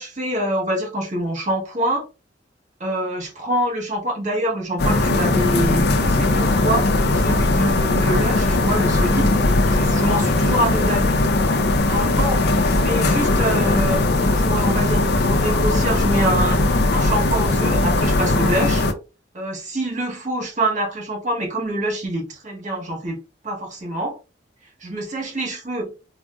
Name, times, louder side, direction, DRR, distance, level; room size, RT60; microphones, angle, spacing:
voice 1, 0.0-2.1 2.8-9.3 9.7-11.2 11.9-14.0 14.3-18.9 19.3-23.2 23.4-24.2 24.8-25.9, right 1 dB, 45° right, 1.0 m, -25 dB
sound 1, 4.8-18.9, left 2 dB, 60° left, 0.5 m, -19 dB
3.8 x 2.0 x 2.3 m
head